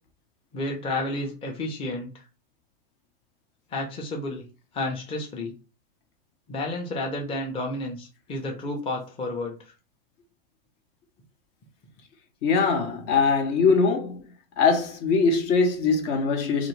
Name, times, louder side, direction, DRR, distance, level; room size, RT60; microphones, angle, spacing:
voice 1, 0.5-2.1 3.7-4.5 4.7-5.5 6.5-9.7, left 2 dB, 20° left, 0.7 m, -31 dB
voice 2, 12.4-14.2 14.6-16.7, left 4 dB, 50° left, 0.9 m, -22 dB
2.5 x 2.5 x 3.1 m
hypercardioid pair, 120°, 31 cm